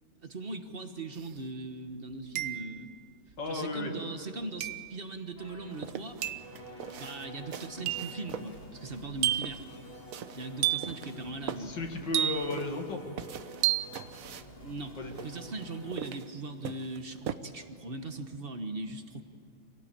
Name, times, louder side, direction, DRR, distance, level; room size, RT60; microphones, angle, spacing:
voice 1, 0.2-2.9 3.5-6.2 7.0-9.6 10.3-11.7 14.6-15.0 15.2-19.2, right 2 dB, 35° right, 7 dB, 1.2 m, -39 dB
sound 1, 1.2-1.3 2.4-2.9 4.6-4.9 6.2-6.5 7.9-8.2 9.2-9.7 10.6-11.0 12.1-12.7 13.6-14.0, right 13 dB, 85° right, 1.5 m, -30 dB
voice 2, 3.4-3.9 11.6-13.0 15.0-15.1, left 3 dB, 65° left, 3 dB, 2.6 m, -34 dB
sound 2, 5.4-15.9, equal, 30° left, 2.6 m, -49 dB
sound 3, 5.7-17.3, right 9 dB, 60° right, 1.0 m, -43 dB
25.5 x 18.0 x 8.8 m, 2.7 s
omnidirectional pair, 2.2 m